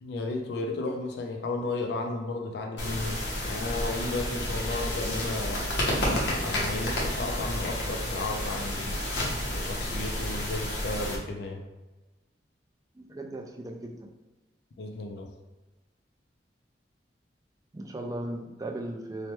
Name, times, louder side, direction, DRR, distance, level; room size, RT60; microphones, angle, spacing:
voice 1, 0.0-5.6 6.1-9.0 9.5-11.6 14.8-15.3, left 2 dB, 65° left, 3 dB, 0.4 m, -34 dB
sound 1, 2.8-11.2, left 1 dB, 80° left, 0.8 m, -30 dB
voice 2, 12.9-14.1 17.7-19.3, right 1 dB, 20° right, 2 dB, 0.3 m, -37 dB
3.1 x 2.1 x 2.9 m, 1.1 s
head